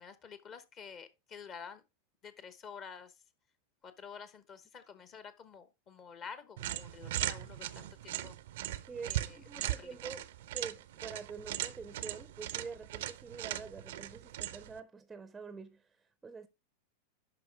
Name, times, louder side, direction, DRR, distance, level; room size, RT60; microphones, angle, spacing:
voice 1, 0.0-1.8 2.2-3.2 3.8-8.4 9.0-10.1, left 6 dB, 30° left, 1.0 m, -50 dB
sound 1, 6.6-14.8, right 14 dB, 55° right, 0.6 m, -39 dB
voice 2, 8.9-16.5, right 5 dB, 15° right, 0.6 m, -46 dB
11.0 x 4.4 x 3.5 m
figure-of-eight pair, 90°, 0 cm